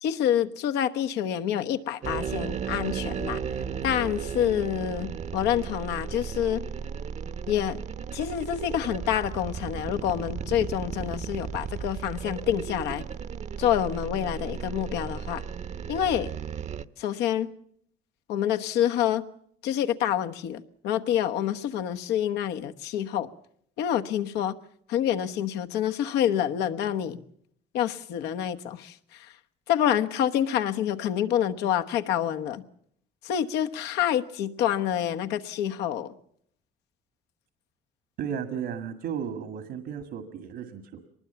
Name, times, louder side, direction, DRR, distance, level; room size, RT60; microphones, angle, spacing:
voice 1, 0.0-3.4 3.8-6.6 7.5-7.8 8.1-13.0 13.6-15.4 15.9-16.3 17.0-17.5 18.3-19.3 19.6-23.3 23.8-24.5 24.9-27.2 27.7-29.3 29.7-32.6 33.2-36.1, left 10 dB, 85° left, 7 dB, 1.2 m, -27 dB
sound 1, 2.0-16.8, right 7 dB, 45° right, 0.8 m, -35 dB
voice 2, 38.2-41.0, right 8 dB, 75° right, 8 dB, 2.0 m, -34 dB
23.5 x 20.0 x 7.0 m, 0.66 s
cardioid pair, 110°, 17 cm